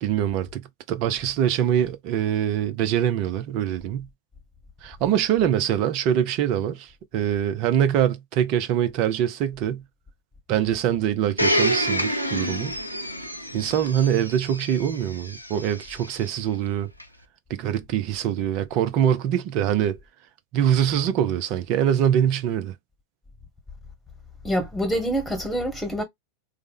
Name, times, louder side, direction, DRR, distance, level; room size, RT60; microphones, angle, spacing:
voice 1, 0.0-4.1 4.8-9.8 10.5-12.7 13.5-16.9 17.5-20.0 20.5-22.7, right 10 dB, 40° right, 0.5 m, -24 dB
Domestic sounds home sounds, 11.4-16.2 17.0-17.1, equal, 90° left, 0.5 m, -28 dB
voice 2, 24.4-26.0, equal, 5° left, 1.4 m, -26 dB
3.2 x 2.1 x 3.3 m
figure-of-eight pair, 90°, 0 cm